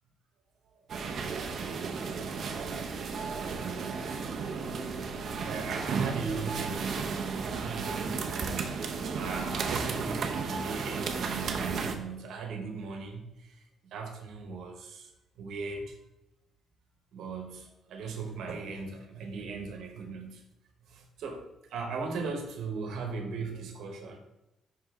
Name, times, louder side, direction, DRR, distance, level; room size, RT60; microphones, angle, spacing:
sound 1, 0.9-12.0, right 5 dB, 55° right, 0.7 m, -34 dB
voice 1, 2.1-3.0 3.4-4.2 5.4-7.1 7.5-8.8 9.1-15.1 15.4-16.0 17.1-20.5 20.9-24.2, right 4 dB, 75° right, 3 dB, 1.2 m, -38 dB
5.5 x 5.1 x 3.7 m, 0.92 s
cardioid pair, 125°, 0 cm